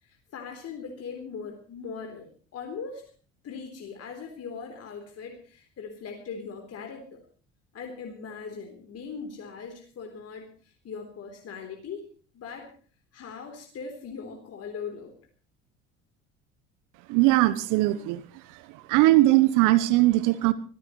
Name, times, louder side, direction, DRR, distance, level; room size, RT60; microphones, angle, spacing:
voice 1, 0.0-3.0 3.4-7.2 7.7-12.1 12.3-12.7 13.1-15.1, left 5 dB, 45° left, 3 dB, 3.7 m, -40 dB
voice 2, 17.1-18.2 18.5-20.5, right 17 dB, 60° right, 15 dB, 1.1 m, -20 dB
24.5 x 15.5 x 3.2 m, 0.41 s
hypercardioid pair, 65°, 36 cm